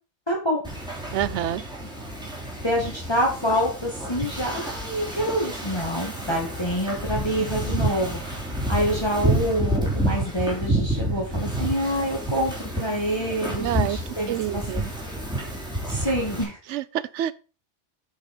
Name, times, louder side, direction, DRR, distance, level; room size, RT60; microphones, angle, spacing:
voice 1, 0.3-0.6 2.6-8.4 8.7-14.8 15.9-16.6, equal, 20° left, 2.1 m, -26 dB
Wind / Ocean, 0.6-16.4, right 1 dB, 5° right, 3.1 m, -29 dB
voice 2, 1.1-1.6 13.6-14.0 14.3-14.9 16.7-17.3, right 11 dB, 75° right, 0.9 m, -27 dB
8.2 x 5.6 x 5.0 m
omnidirectional pair, 1.3 m